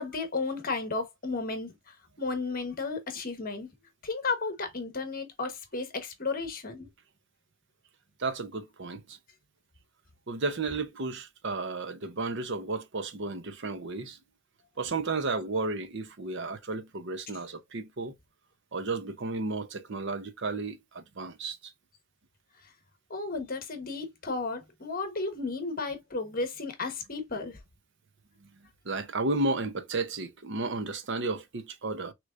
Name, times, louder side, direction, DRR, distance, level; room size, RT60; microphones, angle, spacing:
voice 1, 0.0-3.7 4.0-6.9 23.1-27.6, left 3 dB, 45° left, 1.2 m, -33 dB
voice 2, 8.2-9.2 10.3-14.2 14.8-18.1 18.7-21.7 28.9-32.1, right 3 dB, 55° right, 0.8 m, -33 dB
6.3 x 3.2 x 2.5 m
head